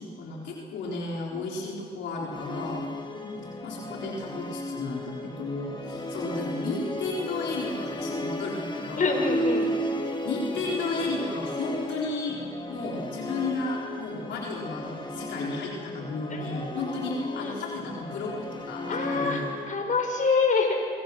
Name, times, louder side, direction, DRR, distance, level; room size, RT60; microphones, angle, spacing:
voice 1, 0.0-2.8 3.4-9.1 10.2-12.4 12.7-19.5, left 3 dB, 90° left, -3 dB, 4.3 m, -33 dB
Musical instrument, 2.3-19.9, left 1 dB, 25° left, 3.7 m, -34 dB
voice 2, 3.1-3.5 9.0-9.7 16.3-17.5 18.9-19.4 19.7-20.7, left 4 dB, 45° left, 2 dB, 5.8 m, -27 dB
27.5 x 22.0 x 6.4 m, 2.1 s
cardioid pair, 70°, 18 cm